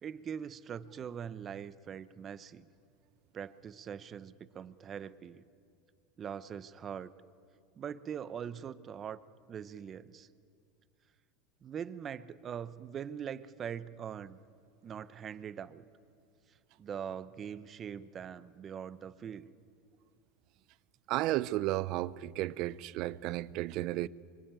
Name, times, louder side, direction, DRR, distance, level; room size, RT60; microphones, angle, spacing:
voice 1, 0.0-2.7 3.3-5.4 6.2-7.1 7.8-9.2 9.5-10.3 11.6-14.4 14.8-15.9 16.8-19.5, right 8 dB, 30° right, 0.9 m, -42 dB
voice 2, 21.1-24.1, right 16 dB, 55° right, 0.7 m, -33 dB
25.0 x 23.0 x 9.1 m
supercardioid pair, 125°, 0 cm